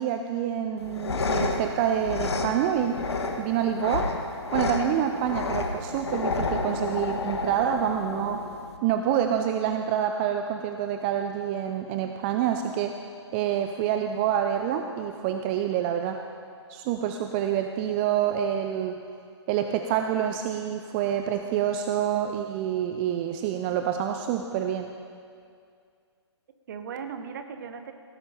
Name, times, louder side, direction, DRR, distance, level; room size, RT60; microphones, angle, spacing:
voice 1, 0.0-3.0 3.4-4.1 4.5-8.4 8.8-12.9 13.3-16.2 16.7-19.0 19.5-24.9, right 9 dB, 20° right, 6 dB, 0.4 m, -27 dB
sound 1, 0.8-8.8, left 3 dB, 65° left, 1.5 m, -30 dB
voice 2, 6.2-6.8 7.4-7.8 26.7-27.9, right 6 dB, 40° right, 8 dB, 1.0 m, -40 dB
17.0 x 9.5 x 5.2 m, 2.3 s
figure-of-eight pair, 130°, 15 cm